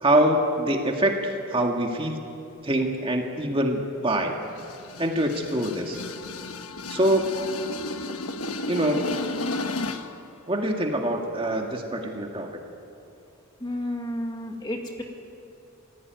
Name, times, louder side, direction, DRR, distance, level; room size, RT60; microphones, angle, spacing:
voice 1, 0.0-2.2 2.6-4.3 5.0-6.0 6.9-7.3 8.7-9.0 10.5-12.5, right 1 dB, 25° right, 2 dB, 1.9 m, -24 dB
sound 1, 4.4-10.2, left 2 dB, 85° left, 1.2 m, -33 dB
voice 2, 13.6-15.0, left 1 dB, 20° left, 2 dB, 2.0 m, -31 dB
27.0 x 16.5 x 9.3 m, 2.7 s
head